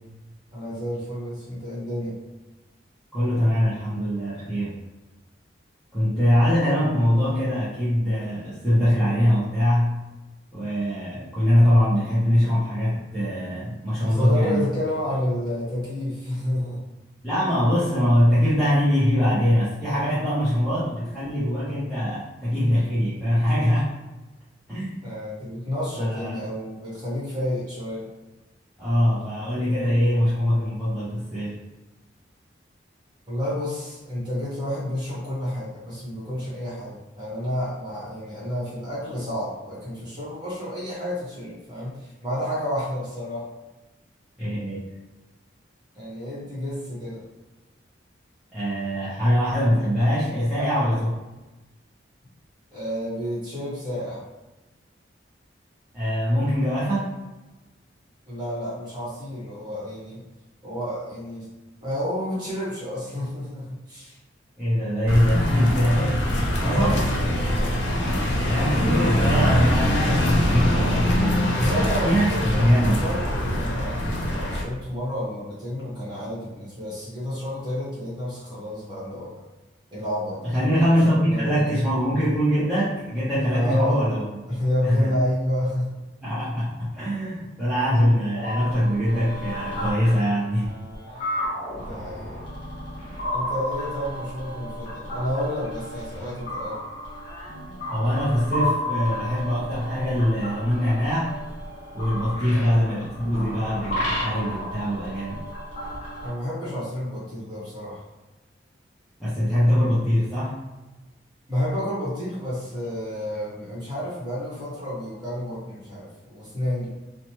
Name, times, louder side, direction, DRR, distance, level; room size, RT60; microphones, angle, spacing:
voice 1, 0.5-2.2 14.0-16.8 25.0-28.1 33.3-43.5 45.9-47.2 52.7-54.2 58.3-60.2 60.6-61.5 61.8-64.2 66.6-67.4 71.4-79.4 79.9-80.4 81.1-81.7 83.5-84.0 84.5-86.0 91.8-92.4 93.3-96.8 102.5-102.7 106.2-108.0 111.5-116.9, left 1 dB, 25° right, -8 dB, 1.1 m, -30 dB
voice 2, 3.1-4.7 5.9-10.0 10.5-14.6 17.2-23.9 24.7-25.0 25.9-26.4 28.8-31.6 44.4-44.9 48.5-51.2 55.9-57.1 64.6-66.3 66.6-67.0 68.4-73.0 80.4-85.2 86.2-90.7 97.9-101.4 101.9-105.5 109.2-110.6, equal, 5° right, -13 dB, 0.6 m, -23 dB
sound 1, 65.1-74.6, equal, 75° left, 0.6 m, -23 dB
sound 2, 88.3-106.3, left 1 dB, 40° left, 1.0 m, -33 dB
3.0 x 2.1 x 2.9 m, 1.1 s
head